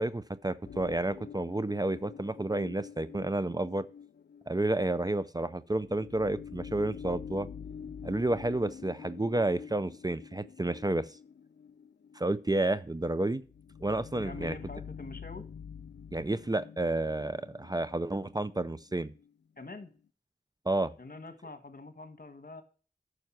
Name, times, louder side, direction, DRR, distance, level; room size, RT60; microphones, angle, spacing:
voice 1, 0.0-3.9 4.5-7.5 8.0-11.1 12.2-13.4 13.8-14.6 16.1-19.1 20.7-20.9, right 2 dB, 20° right, 0.5 m, -30 dB
sound 1, 0.6-19.3 19.7-19.8, left 7 dB, 80° left, 0.4 m, -47 dB
voice 2, 14.1-15.5 19.6-19.9 21.0-22.6, left 3 dB, 55° left, 1.4 m, -45 dB
9.4 x 6.5 x 5.9 m
wide cardioid pair, 55°, 17 cm